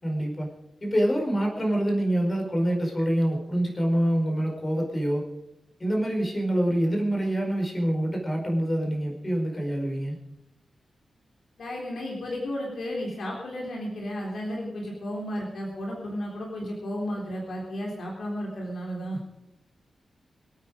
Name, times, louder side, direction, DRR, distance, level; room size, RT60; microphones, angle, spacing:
voice 1, 0.0-0.5 0.8-5.2 5.8-10.2, right 1 dB, 20° left, 0 dB, 4.9 m, -26 dB
voice 2, 11.6-19.2, equal, 65° left, -2 dB, 3.7 m, -33 dB
24.5 x 9.2 x 5.1 m, 0.90 s
wide cardioid pair, 160°, 0 cm